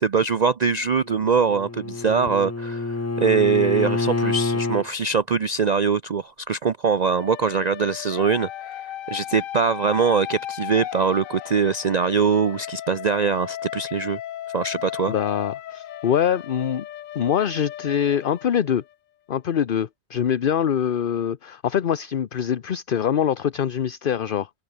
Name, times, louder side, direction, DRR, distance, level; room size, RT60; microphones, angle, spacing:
voice 1, 0.0-8.5 9.1-14.2 14.5-15.1, right 5 dB, 45° right, 0.6 m, -22 dB
Bowed string instrument, 1.1-4.9, left 3 dB, 20° left, 0.4 m, -27 dB
sound 1, 7.1-18.9, left 12 dB, 85° left, 1.1 m, -36 dB
voice 2, 15.1-16.9 17.1-18.8 19.3-24.5, left 9 dB, 50° left, 0.8 m, -24 dB
open air
omnidirectional pair, 1.3 m